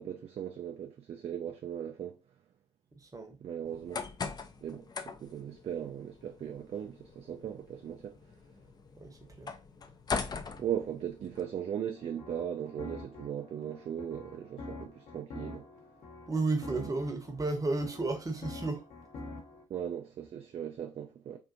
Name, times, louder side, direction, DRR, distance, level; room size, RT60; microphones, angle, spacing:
voice 1, 0.0-2.2 3.4-4.0 4.6-4.8 5.2-8.2 10.6-15.6 16.7-16.9 19.7-21.4, right 9 dB, 40° right, 0.4 m, -38 dB
voice 2, 2.9-3.4 9.0-9.5 16.3-18.9, right 3 dB, 20° right, 0.8 m, -33 dB
sound 1, 3.6-11.4, left 5 dB, 25° left, 0.4 m, -41 dB
sound 2, 11.9-19.6, left 2 dB, 50° left, 0.8 m, -47 dB
2.5 x 2.5 x 2.5 m
figure-of-eight pair, 45°, 17 cm